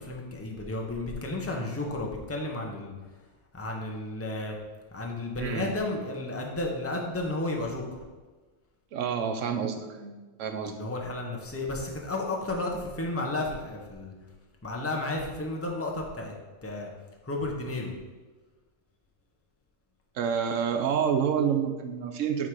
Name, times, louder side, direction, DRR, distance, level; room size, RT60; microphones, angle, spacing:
voice 1, 0.0-2.9 3.5-4.6 4.9-8.0 10.7-14.1 14.6-16.3 16.6-16.9 17.2-17.9, left 2 dB, 15° left, 0 dB, 0.9 m, -32 dB
voice 2, 5.4-5.7 8.9-10.1 10.4-10.7 20.1-22.5, right 7 dB, 85° right, 5 dB, 1.1 m, -28 dB
9.4 x 3.7 x 4.7 m, 1.3 s
omnidirectional pair, 1.3 m